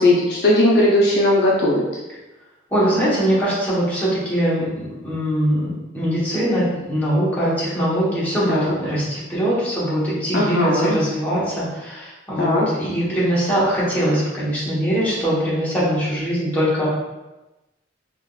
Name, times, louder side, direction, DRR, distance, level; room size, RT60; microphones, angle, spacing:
voice 1, 0.0-1.8 8.5-8.8 10.3-11.0 12.4-12.7, left 1 dB, 60° left, -4 dB, 0.5 m, -17 dB
voice 2, 2.7-16.9, equal, 10° left, -10 dB, 0.9 m, -22 dB
3.4 x 2.3 x 2.3 m, 1.1 s
head